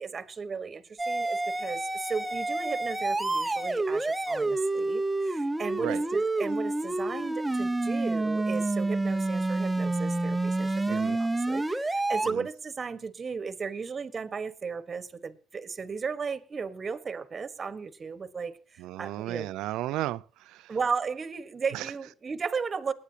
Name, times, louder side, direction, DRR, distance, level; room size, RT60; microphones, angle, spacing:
voice 1, 0.0-19.5 20.7-22.9, right 5 dB, 35° right, 1.4 m, -35 dB
sound 1, 1.0-12.3, right 2 dB, 10° right, 1.0 m, -28 dB
voice 2, 10.9-11.2 12.2-12.5 18.8-20.7 21.7-21.9, right 15 dB, 75° right, 0.5 m, -34 dB
19.5 x 9.6 x 2.9 m
supercardioid pair, 70°, 0 cm